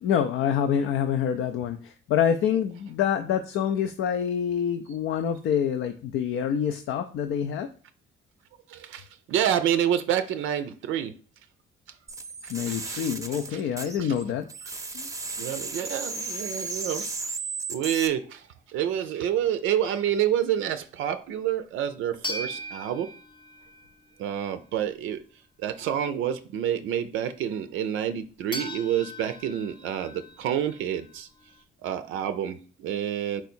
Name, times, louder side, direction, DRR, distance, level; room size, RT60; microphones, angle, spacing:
voice 1, 0.0-7.7 12.5-14.5 14.9-15.1, left 8 dB, 75° left, 0.4 m, -26 dB
voice 2, 8.7-11.1 12.4-13.1 13.5-13.7 14.0-14.1 15.4-17.1 17.7-23.1 24.2-25.2 25.6-31.3 31.8-33.4, right 10 dB, 85° right, 0.4 m, -28 dB
sound 1, 12.1-14.2 14.5-18.1, right 3 dB, 15° right, 0.6 m, -35 dB
sound 2, 22.2-24.2 28.5-31.6, equal, 25° left, 0.6 m, -39 dB
4.5 x 2.7 x 4.3 m
cardioid pair, 90°, 20 cm